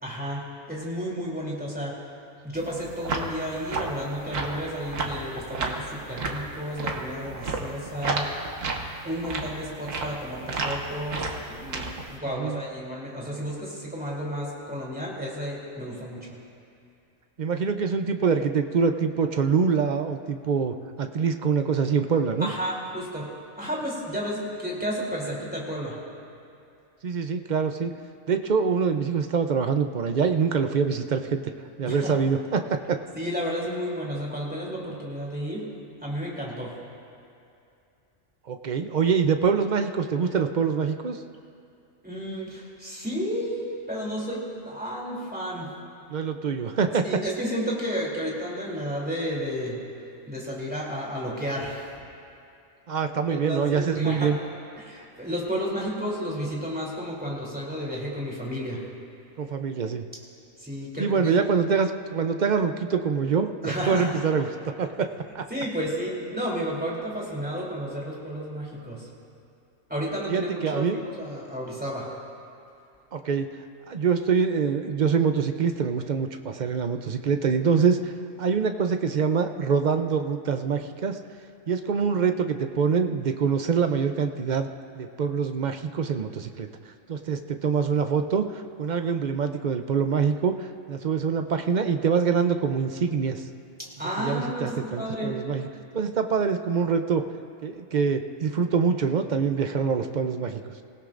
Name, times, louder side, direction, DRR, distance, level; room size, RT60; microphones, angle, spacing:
voice 1, 0.0-1.9 2.4-8.3 9.0-16.3 22.4-23.3 23.6-26.0 31.9-32.1 33.1-35.6 36.0-36.7 42.0-45.7 47.0-49.8 50.3-52.0 53.3-54.3 54.8-58.8 60.6-61.4 63.6-64.2 65.5-69.1 69.9-72.1 94.0-95.3, equal, 5° right, -4 dB, 3.1 m, -32 dB
sound 1, 2.6-12.2, right 3 dB, 70° right, 1.6 m, -32 dB
voice 2, 17.4-22.5 27.0-27.9 28.3-31.4 31.8-33.0 38.5-41.2 46.1-47.1 52.9-54.4 59.4-60.0 61.0-64.5 64.8-65.5 70.3-71.0 73.1-73.5 73.9-78.1 78.4-81.2 81.7-84.7 84.9-86.7 87.1-93.4 94.2-95.7 95.9-97.2 97.6-100.6, right 6 dB, 45° right, 7 dB, 0.6 m, -25 dB
25.5 x 16.5 x 2.5 m, 2.6 s
omnidirectional pair, 1.4 m